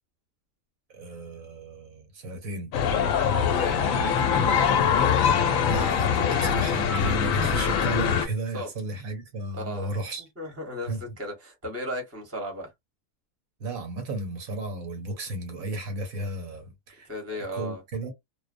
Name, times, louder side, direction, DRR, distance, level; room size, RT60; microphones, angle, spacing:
voice 1, 0.9-2.7 5.7-10.2 10.9-11.0 13.6-18.1, right 1 dB, 70° right, 1.3 m, -34 dB
sound 1, 2.7-8.3, left 7 dB, 70° left, 0.9 m, -23 dB
voice 2, 3.5-4.5 8.5-8.7 9.5-10.0 10.4-12.7 17.1-17.8, equal, 10° right, 0.8 m, -36 dB
2.5 x 2.0 x 2.5 m
omnidirectional pair, 1.5 m